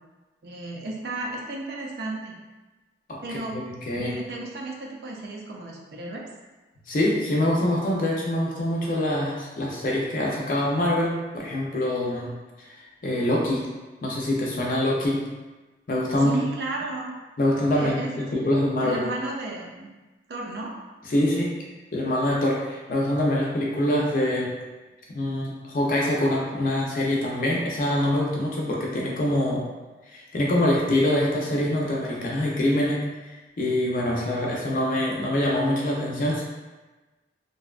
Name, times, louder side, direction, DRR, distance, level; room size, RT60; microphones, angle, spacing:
voice 1, 0.4-2.4 3.2-3.6 3.9-6.3 16.2-17.1 17.7-18.5 18.8-19.9 20.3-20.7, right 2 dB, 65° right, -1 dB, 0.4 m, -33 dB
voice 2, 3.1-3.6 3.9-4.1 6.9-12.3 12.6-12.8 13.0-13.7 14.0-15.3 15.9-16.4 17.4-19.0 21.1-21.5 21.9-24.5 25.1-29.6 30.1-33.0 33.6-36.4, left 1 dB, 45° left, -3 dB, 0.5 m, -24 dB
2.6 x 2.2 x 2.3 m, 1.2 s
head